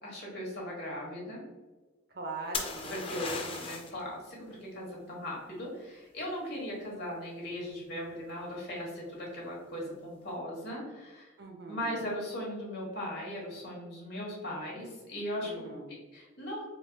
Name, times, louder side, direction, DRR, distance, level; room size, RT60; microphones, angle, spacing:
voice 1, 0.0-1.4 2.9-11.3 11.7-15.6 16.1-16.6, equal, 55° left, -3 dB, 1.3 m, -38 dB
voice 2, 2.1-3.7 11.4-12.1 15.4-15.9, right 3 dB, 50° right, 1 dB, 0.6 m, -42 dB
sound 1, 2.5-4.0 7.7-8.1, left 4 dB, 25° left, 0.4 m, -36 dB
4.4 x 2.8 x 2.2 m, 1.3 s
head